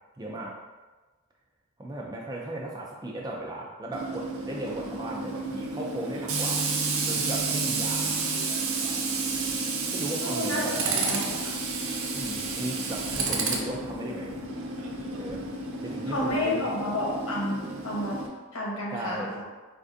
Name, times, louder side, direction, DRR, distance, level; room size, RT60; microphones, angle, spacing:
voice 1, 0.2-0.5 1.8-6.7 7.1-8.1 9.9-10.8 12.1-14.4 15.1-15.4 15.8-16.7 18.9-19.3, right 1 dB, 20° right, -2 dB, 0.4 m, -36 dB
Tools, 3.9-18.3, right 3 dB, 75° right, 0.5 m, -31 dB
voice 2, 10.2-11.4 16.1-18.2 18.5-19.3, left 1 dB, 75° left, -4 dB, 1.0 m, -30 dB
4.3 x 2.5 x 2.5 m, 1.2 s
head